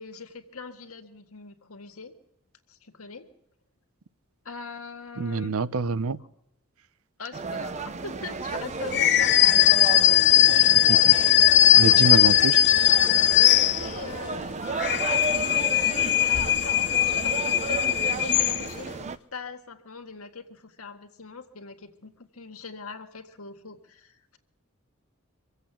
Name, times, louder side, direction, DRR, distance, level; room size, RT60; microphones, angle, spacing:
voice 1, 0.0-2.1 2.7-3.3 4.5-5.5 7.2-9.3 10.5-10.8 13.8-14.6 14.9-24.4, left 4 dB, 75° left, 6 dB, 1.9 m, -41 dB
voice 2, 5.2-6.2 10.6-11.5 11.8-12.6, right 4 dB, 70° right, 16 dB, 0.7 m, -27 dB
sound 1, 7.3-19.2, right 4 dB, 30° right, 0.6 m, -33 dB
sound 2, 8.9-14.2 14.6-18.9, left 13 dB, 55° left, 0.6 m, -19 dB
24.5 x 8.2 x 7.1 m, 0.79 s
head